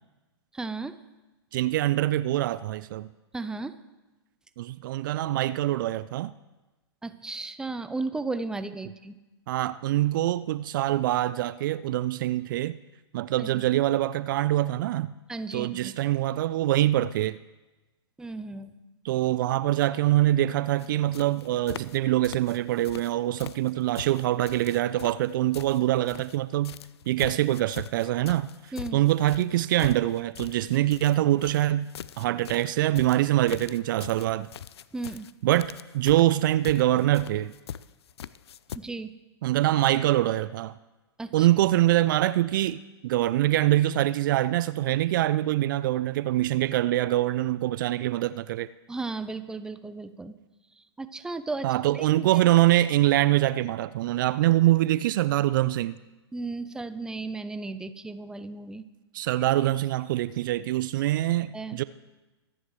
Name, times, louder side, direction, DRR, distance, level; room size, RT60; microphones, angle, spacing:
voice 1, 0.5-1.0 3.3-3.8 7.0-9.2 13.4-13.7 15.3-15.9 18.2-18.7 28.7-29.0 34.9-35.3 38.7-39.1 41.2-41.5 48.9-50.4 50.8-51.7 51.9-52.3 56.3-58.8 61.5-61.8, right 3 dB, 5° right, 0.6 m, -35 dB
voice 2, 1.5-3.1 4.6-6.3 9.5-12.8 13.1-15.1 15.5-17.4 19.0-26.7 27.1-31.9 32.2-34.5 35.4-37.5 39.4-40.7 41.3-48.7 51.6-56.0 59.1-61.8, right 14 dB, 50° right, 0.4 m, -24 dB
sound 1, 20.8-20.9 21.1-22.0 22.2-23.1 23.4-26.4 26.6-38.8, left 9 dB, 70° left, 0.5 m, -42 dB
24.5 x 10.0 x 3.2 m
figure-of-eight pair, 110°, 14 cm